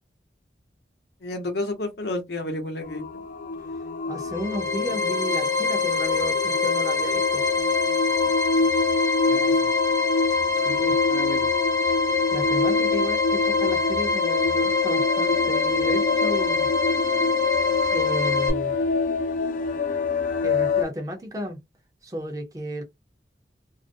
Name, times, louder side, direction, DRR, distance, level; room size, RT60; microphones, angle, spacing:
voice 1, 1.2-3.0 9.3-9.7 11.1-11.5, left 2 dB, 70° left, 0.7 m, -31 dB
sound 1, 2.8-20.8, left 3 dB, 45° left, 0.3 m, -27 dB
voice 2, 4.1-7.4 10.5-11.0 12.3-16.7 17.9-18.8 20.4-21.6 22.0-22.8, equal, 20° right, 0.5 m, -33 dB
sound 2, 4.3-18.5, left 4 dB, 20° left, 0.7 m, -24 dB
2.4 x 2.1 x 2.5 m
head